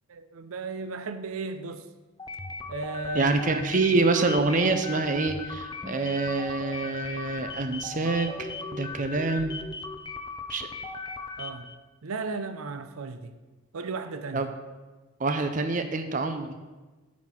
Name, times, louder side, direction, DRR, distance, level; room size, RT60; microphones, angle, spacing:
voice 1, 0.1-1.9 2.7-3.3 11.4-11.7 12.0-13.4 13.7-14.5, right 3 dB, 85° right, 10 dB, 0.6 m, -35 dB
sound 1, 2.2-11.7, left 3 dB, 20° left, 0.5 m, -37 dB
voice 2, 3.1-9.6 10.5-10.7 14.3-14.5 15.2-16.6, right 3 dB, 35° right, 7 dB, 0.6 m, -26 dB
9.1 x 4.1 x 7.2 m, 1.2 s
head